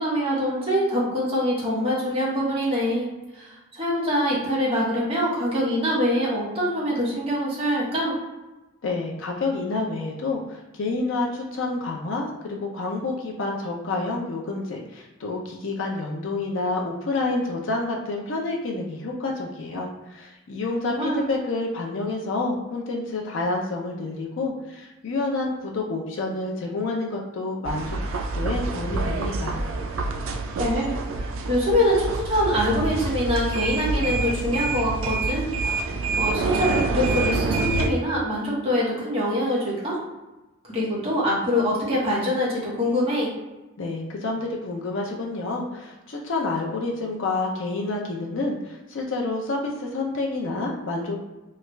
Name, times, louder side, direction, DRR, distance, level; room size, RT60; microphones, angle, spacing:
voice 1, 0.0-8.2 20.8-21.2 30.6-31.0 31.5-35.5 36.2-40.0 40.6-43.3, equal, 25° right, -7 dB, 1.1 m, -24 dB
voice 2, 8.8-28.0 28.3-29.6 43.8-51.2, left 3 dB, 60° left, 0 dB, 0.5 m, -28 dB
sound 1, 27.7-37.9, right 3 dB, 70° right, 0.4 m, -27 dB
3.2 x 2.3 x 3.1 m, 1.1 s
head